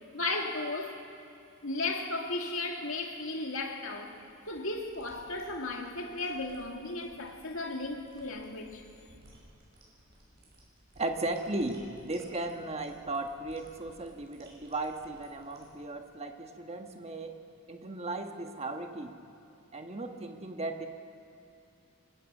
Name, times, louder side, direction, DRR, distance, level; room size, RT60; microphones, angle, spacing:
voice 1, 0.1-1.0 1.6-4.2 4.5-8.8, left 2 dB, 75° left, 2.2 m, -35 dB
sound 1, 3.5-15.8, right 1 dB, 55° right, 6.7 m, -58 dB
voice 2, 11.0-17.4 17.7-19.2 19.7-20.9, right 2 dB, 30° right, 1.3 m, -36 dB
24.5 x 19.5 x 6.2 m
head